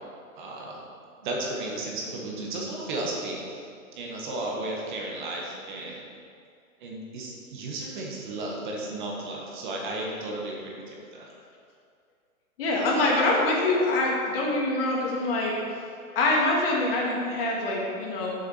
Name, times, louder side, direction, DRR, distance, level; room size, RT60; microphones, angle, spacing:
voice 1, 0.3-0.8 1.2-3.7 3.9-6.1 6.8-11.3, right 2 dB, 35° right, -2 dB, 1.7 m, -34 dB
voice 2, 12.6-15.5 16.1-18.3, left 2 dB, 40° left, -3 dB, 2.6 m, -25 dB
7.2 x 7.1 x 6.4 m, 2.3 s
hypercardioid pair, 155°, 42 cm